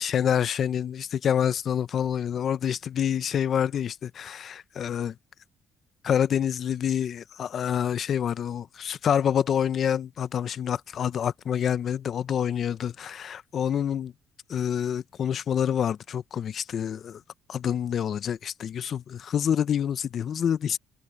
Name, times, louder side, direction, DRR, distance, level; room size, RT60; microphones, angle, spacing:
voice 1, 0.0-5.1 6.0-14.1 14.5-17.2 17.5-20.8, left 9 dB, 50° left, 0.6 m, -27 dB
cardioid pair, 120°, 0 cm